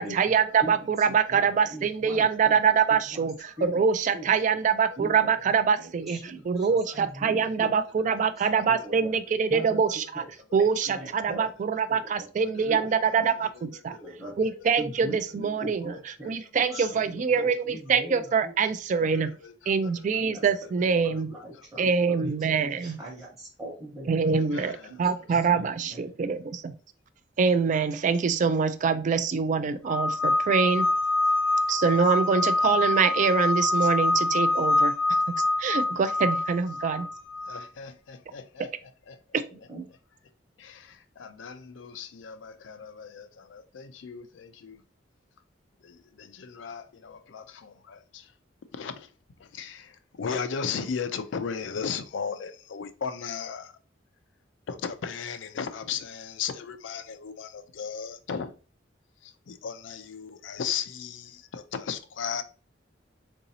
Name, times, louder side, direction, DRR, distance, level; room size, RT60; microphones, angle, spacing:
voice 1, 0.0-10.2 10.5-13.9 14.4-15.8 16.3-19.4 19.7-21.4 21.8-23.0 24.1-26.8 27.4-30.9 31.7-37.1, right 6 dB, 40° right, 0.3 m, -25 dB
voice 2, 0.6-2.6 2.9-3.3 3.6-3.8 4.1-4.3 5.0-7.7 8.0-8.2 8.7-9.1 9.5-9.8 10.1-10.3 10.6-11.5 11.9-12.3 12.6-12.9 13.2-13.5 13.9-18.5 20.2-20.7 21.0-24.5 24.9-25.0 25.3-26.2 39.7-39.8, right 1 dB, 20° right, 0.9 m, -41 dB
voice 3, 2.1-2.8 3.6-3.7 4.9-5.0 8.1-8.5 10.5-10.6 12.4-14.3 14.7-14.8 16.6-16.8 19.0-20.2 20.6-20.7 21.0-21.8 24.4-25.0 37.4-39.4 40.6-44.8 45.8-48.3 48.7-49.1 49.4-53.7 54.7-58.6 59.2-62.4, left 6 dB, 80° left, 0.4 m, -37 dB
sound 1, 29.9-37.6, left 2 dB, 5° left, 0.5 m, -25 dB
3.8 x 2.6 x 2.7 m
head